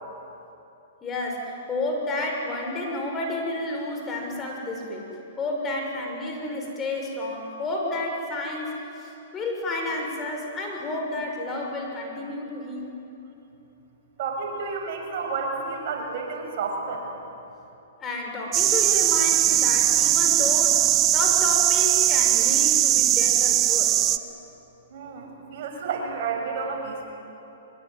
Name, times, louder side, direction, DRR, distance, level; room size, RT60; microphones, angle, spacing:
voice 1, 1.0-5.1 5.4-12.9 18.0-24.1, left 2 dB, 20° left, 1 dB, 6.1 m, -31 dB
voice 2, 14.2-17.0 24.9-27.1, right 4 dB, 55° right, 1 dB, 6.3 m, -31 dB
sound 1, 18.5-24.2, right 12 dB, 30° right, 1.0 m, -20 dB
23.5 x 22.5 x 9.5 m, 2.9 s
hypercardioid pair, 120°, 0 cm